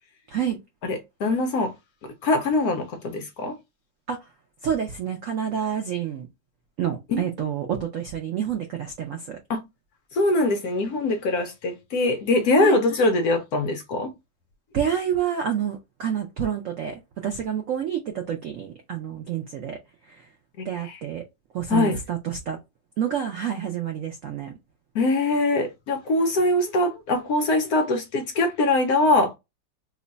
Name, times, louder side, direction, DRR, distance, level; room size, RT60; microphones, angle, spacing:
voice 1, 0.8-1.7 2.2-3.6 7.1-7.3 9.5-9.6 10.1-14.1 20.6-21.0 21.7-22.0 24.9-29.3, left 2 dB, 70° left, 0.9 m, -23 dB
voice 2, 4.6-6.3 6.8-9.4 12.6-12.8 14.7-19.8 20.1-20.2 20.6-21.2 21.5-22.6 23.0-24.5, right 9 dB, 85° right, 0.7 m, -28 dB
3.1 x 2.2 x 3.8 m
omnidirectional pair, 2.0 m